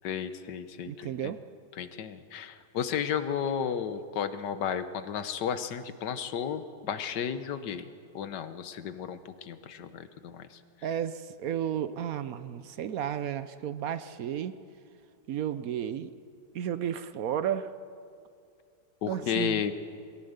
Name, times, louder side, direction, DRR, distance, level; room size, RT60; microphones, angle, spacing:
voice 1, 0.0-1.3 1.8-7.9 8.1-10.6 19.0-19.7, left 8 dB, 85° left, 11 dB, 1.6 m, -33 dB
voice 2, 0.9-1.4 10.8-14.6 15.3-16.1 16.5-17.7 19.1-19.6, right 9 dB, 65° right, 13 dB, 1.0 m, -33 dB
22.0 x 16.5 x 8.0 m, 2.4 s
omnidirectional pair, 1.8 m